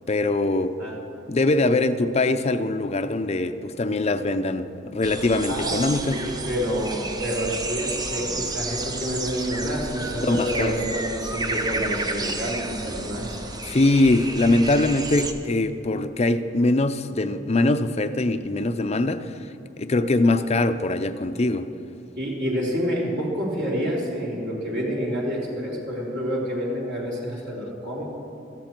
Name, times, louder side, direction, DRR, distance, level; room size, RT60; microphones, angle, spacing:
voice 1, 0.1-0.8 1.3-6.3 10.3-10.7 13.6-19.5 19.8-21.7, left 2 dB, 35° left, 10 dB, 0.5 m, -22 dB
sound 1, 5.0-15.3, right 2 dB, 20° right, 0.8 m, -31 dB
voice 2, 5.5-13.4 22.1-28.1, equal, 60° right, -4 dB, 3.4 m, -28 dB
17.5 x 13.5 x 4.5 m, 2.8 s
head